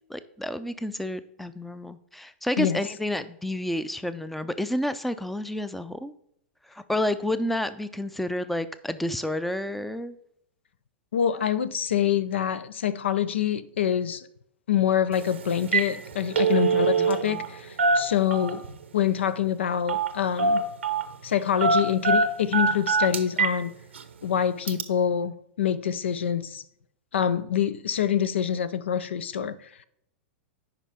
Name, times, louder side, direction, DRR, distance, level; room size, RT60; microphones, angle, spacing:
voice 1, 0.1-6.1 6.7-10.2 16.5-17.4, left 1 dB, ahead, 0.5 m, -30 dB
voice 2, 11.1-14.3 14.7-18.6 18.9-20.6 21.2-23.7 24.2-26.6 27.1-29.5, left 9 dB, 80° left, 0.5 m, -26 dB
Telephone, 15.1-15.3 15.6-15.9 16.2-17.5 17.8-18.7 19.9-20.1 20.4-21.1 21.6-23.6 24.0-24.1 24.7-24.8, right 4 dB, 90° right, 0.7 m, -23 dB
9.9 x 5.1 x 3.6 m
hypercardioid pair, 110°, 6 cm